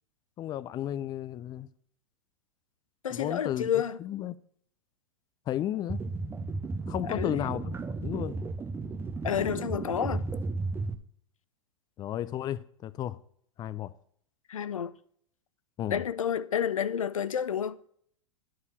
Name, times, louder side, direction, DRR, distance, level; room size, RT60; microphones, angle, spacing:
voice 1, 0.4-1.7 3.1-3.7 4.0-4.4 5.5-6.0 6.9-7.8 8.0-8.4 12.0-13.2 13.6-13.9 15.8-16.0, left 12 dB, 25° left, 0.4 m, -33 dB
voice 2, 3.0-4.0 7.0-7.4 9.2-10.2 14.5-14.9 15.9-17.8, left 8 dB, 80° left, 0.5 m, -30 dB
sound 1, 5.9-10.9, right 3 dB, 15° right, 0.6 m, -34 dB
9.8 x 4.8 x 6.8 m
figure-of-eight pair, 95°, 17 cm